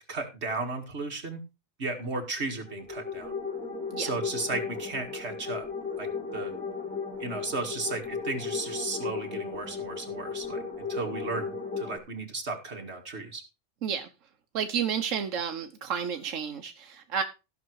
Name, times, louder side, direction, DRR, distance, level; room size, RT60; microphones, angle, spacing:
voice 1, 0.1-1.4 1.8-3.3 4.0-5.7 6.0-6.5 7.2-13.4, right 3 dB, 60° right, 3 dB, 2.4 m, -34 dB
sound 1, 2.5-12.0, left 5 dB, 5° left, 3.6 m, -35 dB
voice 2, 14.5-17.2, right 7 dB, 90° right, 6 dB, 1.3 m, -31 dB
15.0 x 6.3 x 4.7 m, 0.29 s
omnidirectional pair, 1.3 m